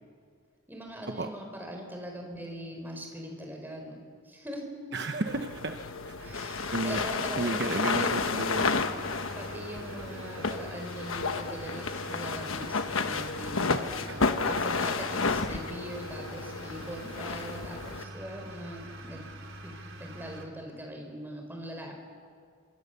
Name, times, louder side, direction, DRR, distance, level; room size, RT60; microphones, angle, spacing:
voice 1, 0.7-4.7 6.2-7.6 7.9-8.2 9.4-19.3 19.6-19.7 20.0-21.9, equal, 10° right, 2 dB, 4.3 m, -41 dB
voice 2, 4.9-5.8 6.1-6.2 6.7-7.1 7.4-8.7 14.1-14.2 14.4-14.7, right 2 dB, 55° right, 6 dB, 1.1 m, -33 dB
sound 1, 5.3-18.0, left 4 dB, 90° left, 1.2 m, -31 dB
sound 2, 6.2-20.4, right 1 dB, 80° right, 3.7 m, -45 dB
27.5 x 25.5 x 6.9 m, 2.1 s
head